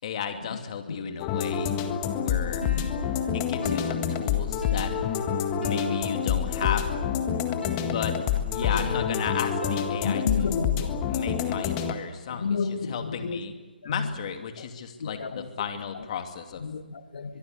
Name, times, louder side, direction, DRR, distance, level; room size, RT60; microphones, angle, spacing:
voice 1, 0.0-1.7 2.1-2.6 3.3-5.0 5.5-6.9 7.8-8.2 8.5-10.6 11.1-12.6 12.9-13.5 13.8-16.6, left 7 dB, 40° left, 2.7 m, -34 dB
sound 1, 1.2-11.9, left 8 dB, 25° left, 1.7 m, -28 dB
Piano, 2.6-10.5, left 2 dB, 80° left, 2.5 m, -38 dB
voice 2, 2.6-2.9 7.0-7.1 7.4-7.6 8.6-9.1 10.0-11.0 12.3-13.4 13.8-14.2 14.6-14.7 15.0-15.5 15.9-16.1 16.6-17.4, left 5 dB, 55° left, 1.8 m, -32 dB
23.0 x 23.0 x 8.3 m
figure-of-eight pair, 140°, 6 cm